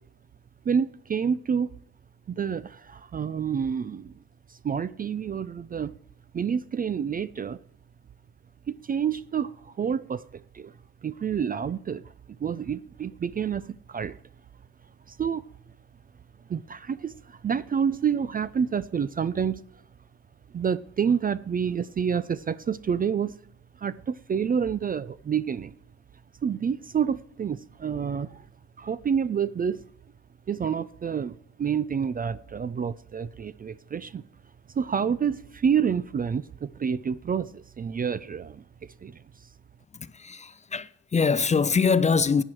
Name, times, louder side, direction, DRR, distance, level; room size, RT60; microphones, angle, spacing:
voice 1, 0.7-1.7 2.3-4.1 4.5-5.9 6.3-7.6 8.7-10.7 11.0-12.1 12.4-14.2 15.1-15.4 16.5-19.6 20.5-23.3 23.8-25.7 26.4-28.5 28.8-29.8 30.5-34.2 34.8-38.6 39.0-39.2, right 7 dB, 30° right, 0.4 m, -28 dB
voice 2, 39.9-42.4, left 5 dB, 25° left, 0.5 m, -24 dB
15.0 x 9.1 x 4.6 m
cardioid pair, 90°, 30 cm